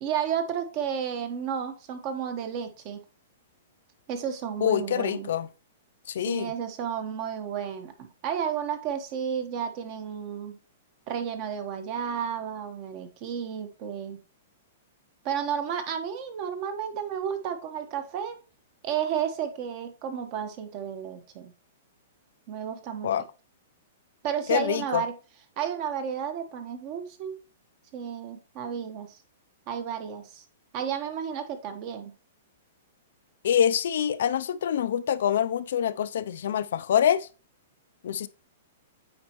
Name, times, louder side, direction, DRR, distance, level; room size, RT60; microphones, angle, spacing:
voice 1, 0.0-3.0 4.1-5.3 6.2-10.6 11.1-14.2 15.2-18.4 18.8-21.5 22.5-23.1 24.2-25.1 25.6-27.3 27.9-29.2 29.7-30.4 30.7-32.1, right 8 dB, 35° right, 1.1 m, -32 dB
voice 2, 4.6-5.5 6.1-6.5 23.0-23.2 24.5-25.0 33.4-37.3 38.0-38.3, left 9 dB, 70° left, 0.4 m, -25 dB
8.7 x 4.3 x 3.0 m
hypercardioid pair, 160°, 0 cm